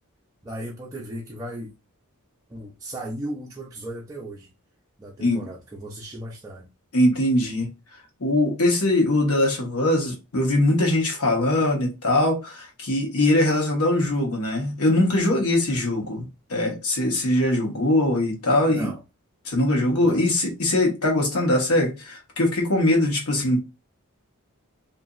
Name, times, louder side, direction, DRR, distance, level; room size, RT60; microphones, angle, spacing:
voice 1, 0.4-1.7 2.5-4.5 5.0-6.7 18.5-19.0 19.9-20.2, right 1 dB, 15° right, 0.4 m, -36 dB
voice 2, 6.9-7.7 8.2-18.9 19.5-23.6, left 1 dB, 75° left, 1.1 m, -22 dB
2.8 x 2.5 x 2.4 m
head